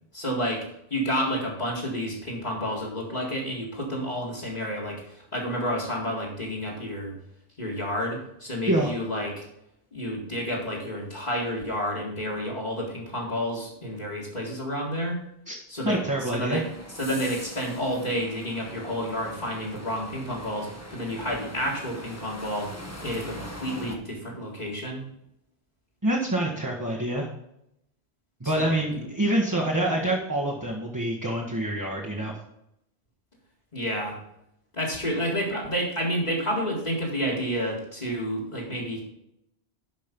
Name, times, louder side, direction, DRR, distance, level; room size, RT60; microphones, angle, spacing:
voice 1, 0.1-0.6 0.9-7.1 7.6-9.4 9.9-15.2 15.7-22.7 23.0-25.0 28.4-28.8 33.7-34.2 34.7-39.0, equal, 40° left, -4 dB, 2.2 m, -30 dB
voice 2, 15.8-16.6 26.0-27.3 28.4-32.3, right 1 dB, 20° right, -2 dB, 1.4 m, -26 dB
sound 1, 16.5-24.0, equal, 15° left, 1.2 m, -42 dB
11.5 x 5.3 x 5.2 m, 0.81 s
omnidirectional pair, 1.1 m